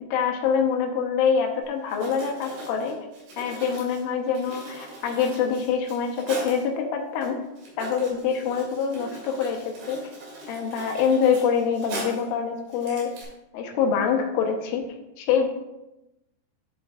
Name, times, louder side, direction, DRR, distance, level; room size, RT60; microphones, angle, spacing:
voice 1, 0.1-3.0 3.4-7.4 7.8-10.1 10.5-13.1 13.5-15.5, left 6 dB, 75° left, 2 dB, 3.3 m, -25 dB
Writing, 1.6-1.7 1.9-6.6 7.2-7.3 7.6-12.3 12.7-13.2, right 1 dB, 60° right, 5.2 m, -40 dB
13.0 x 7.5 x 2.4 m, 0.93 s
omnidirectional pair, 5.9 m